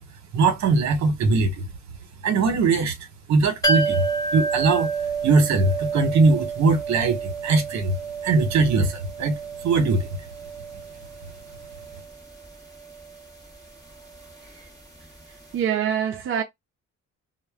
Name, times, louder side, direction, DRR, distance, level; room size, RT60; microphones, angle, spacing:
voice 1, 0.3-1.6 2.2-3.0 3.3-4.0 4.3-4.9 5.2-8.0 8.2-9.4 9.6-10.1, right 3 dB, 65° right, 1.0 m, -20 dB
sound 1, 3.6-15.2 15.5-15.6, right 4 dB, 10° left, 1.0 m, -30 dB
voice 2, 15.5-16.4, right 9 dB, 45° right, 0.4 m, -24 dB
2.1 x 2.1 x 3.4 m
cardioid pair, 90°, 30 cm